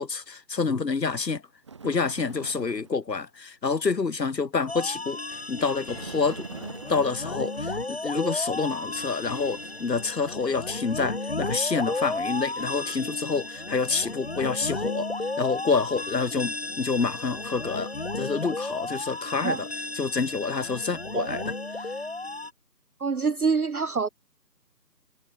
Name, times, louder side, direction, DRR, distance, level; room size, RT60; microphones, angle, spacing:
voice 1, 0.0-1.4 1.8-6.5 6.9-15.1 15.4-19.7 19.9-21.4 21.7-22.0, left 4 dB, 75° left, 1.2 m, -28 dB
Bird, 1.6-3.0 5.9-8.4, right 5 dB, 15° right, 5.2 m, -43 dB
sound 1, 4.7-22.5, left 2 dB, 35° left, 2.6 m, -34 dB
voice 2, 21.1-21.5 23.0-24.1, right 5 dB, 60° right, 0.7 m, -26 dB
figure-of-eight pair, 170°, 50 cm